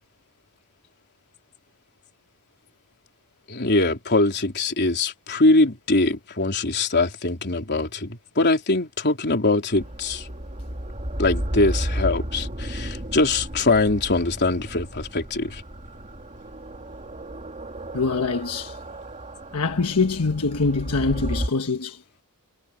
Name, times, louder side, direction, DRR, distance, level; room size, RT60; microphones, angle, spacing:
voice 1, 3.5-10.3 11.2-15.6, left 2 dB, 50° left, 3.7 m, -22 dB
sound 1, 9.7-21.5, equal, 35° right, 3.0 m, -33 dB
voice 2, 17.9-18.8 19.5-22.0, left 4 dB, 85° left, 1.2 m, -24 dB
head